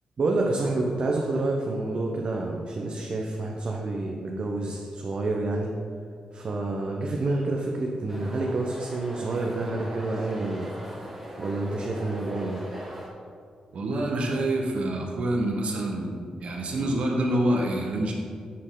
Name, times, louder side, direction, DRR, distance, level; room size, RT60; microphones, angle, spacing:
voice 1, 0.2-5.7 6.3-10.9 11.4-12.6, right 2 dB, 50° right, 0 dB, 0.6 m, -28 dB
sound 1, 8.1-13.1, equal, 5° right, 1.6 m, -40 dB
voice 2, 13.7-18.1, right 1 dB, 70° right, 0 dB, 0.9 m, -27 dB
7.5 x 4.3 x 3.7 m, 2.2 s
cardioid pair, 75°, 2 cm